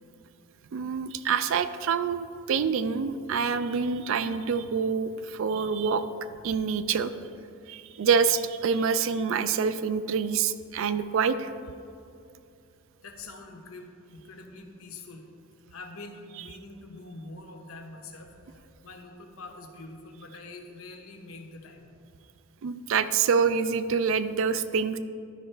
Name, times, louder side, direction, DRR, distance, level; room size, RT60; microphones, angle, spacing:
voice 1, 0.7-6.0 6.4-7.1 7.7-11.5 22.6-25.0, right 6 dB, 65° right, 12 dB, 0.3 m, -26 dB
voice 2, 13.0-15.3 15.7-21.9, left 3 dB, 75° left, 3 dB, 0.9 m, -45 dB
11.5 x 5.3 x 3.3 m, 2.6 s
head